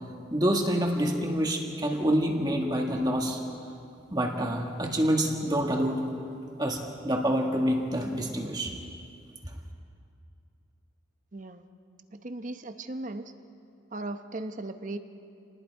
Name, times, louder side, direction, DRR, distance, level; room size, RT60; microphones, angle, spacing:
voice 1, 0.3-3.4 4.1-6.0 6.6-6.8 7.0-8.7, equal, 20° right, 1 dB, 1.7 m, -27 dB
voice 2, 11.3-11.6 12.1-13.3 13.9-15.0, right 2 dB, 40° right, 8 dB, 0.9 m, -37 dB
28.5 x 20.0 x 4.6 m, 2.5 s
head